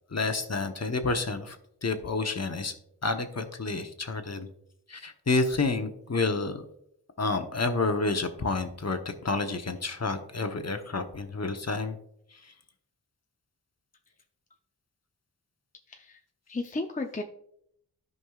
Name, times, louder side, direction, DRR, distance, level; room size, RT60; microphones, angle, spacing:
voice 1, 0.1-2.7 3.0-4.5 4.9-6.6 7.2-12.0 12.4-12.5, left 3 dB, 40° left, 7 dB, 1.0 m, -29 dB
voice 2, 16.5-17.2, left 2 dB, 20° left, 4 dB, 0.6 m, -33 dB
12.5 x 5.4 x 2.4 m, 0.73 s
cardioid pair, 45°, 40 cm